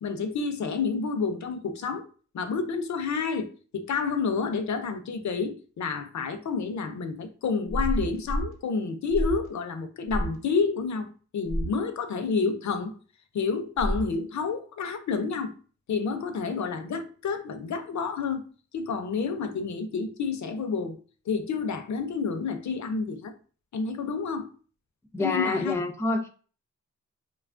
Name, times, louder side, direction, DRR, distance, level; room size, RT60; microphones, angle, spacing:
voice 1, 0.0-2.0 2.3-11.1 11.3-12.9 13.3-15.5 15.9-18.4 18.7-21.0 21.3-23.3 23.7-24.5 25.2-25.8, left 5 dB, 65° left, 0.5 m, -29 dB
sound 1, 7.7-8.5 9.1-9.5 10.1-10.4 11.5-11.8 13.8-14.2, equal, 45° right, 0.8 m, -29 dB
voice 2, 25.1-26.3, left 3 dB, 10° left, 0.3 m, -27 dB
2.8 x 2.3 x 2.4 m
wide cardioid pair, 90°, 31 cm